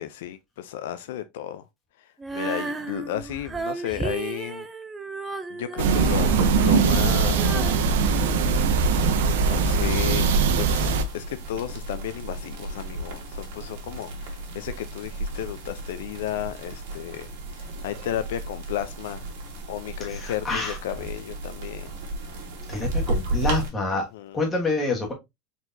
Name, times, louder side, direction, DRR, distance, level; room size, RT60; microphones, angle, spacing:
voice 1, 0.0-1.6 2.0-4.7 5.5-6.3 6.6-7.6 8.5-8.7 9.4-17.3 17.6-19.2 19.7-21.9 23.9-24.4, left 12 dB, 75° left, 0.5 m, -33 dB
Female singing, 2.2-9.2, right 4 dB, 10° right, 0.4 m, -35 dB
sound 1, 5.8-11.0, right 5 dB, 85° right, 0.7 m, -21 dB
sound 2, 6.3-23.7, right 1 dB, 60° right, 1.7 m, -34 dB
voice 2, 20.1-20.8 22.7-24.1 24.3-25.1, left 2 dB, 10° left, 1.3 m, -27 dB
4.5 x 4.1 x 2.6 m
supercardioid pair, 180°, 0 cm